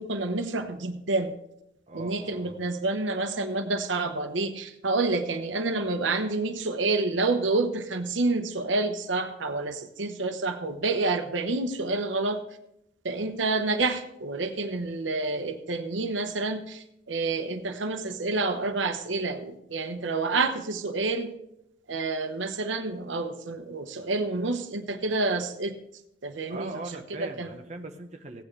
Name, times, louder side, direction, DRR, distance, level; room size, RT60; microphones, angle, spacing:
voice 1, 0.0-1.3 1.9-12.4 13.0-21.3 21.9-25.7 26.2-26.8 27.2-27.5, right 3 dB, 85° right, 7 dB, 1.0 m, -28 dB
voice 2, 1.9-2.6 26.5-28.4, right 2 dB, 40° right, 3 dB, 1.0 m, -40 dB
16.5 x 8.8 x 3.3 m, 0.79 s
head